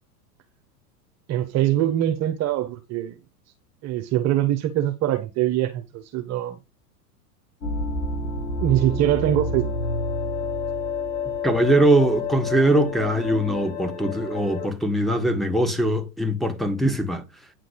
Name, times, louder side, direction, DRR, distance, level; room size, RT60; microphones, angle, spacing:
voice 1, 1.3-3.2 3.8-6.6 8.6-9.7, right 12 dB, 35° right, 1.0 m, -23 dB
sound 1, 7.6-14.7, left 3 dB, 80° left, 2.7 m, -29 dB
voice 2, 11.4-17.2, right 1 dB, ahead, 1.5 m, -21 dB
9.5 x 3.8 x 6.4 m
hypercardioid pair, 100°, 48 cm